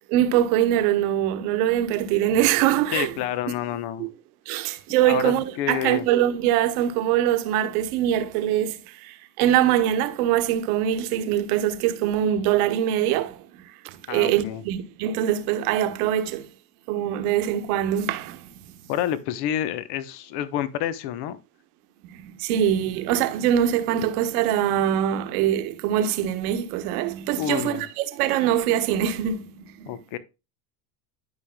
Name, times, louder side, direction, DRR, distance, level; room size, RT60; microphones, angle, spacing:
voice 1, 0.1-3.1 4.0-4.1 4.5-16.5 16.9-18.7 22.0-30.0, right 11 dB, 65° right, 1.3 m, -23 dB
voice 2, 2.9-4.1 5.0-6.1 14.1-14.6 18.9-21.4 27.4-27.8 29.9-30.2, left 11 dB, 55° left, 1.0 m, -28 dB
12.0 x 5.1 x 2.3 m
hypercardioid pair, 95°, 47 cm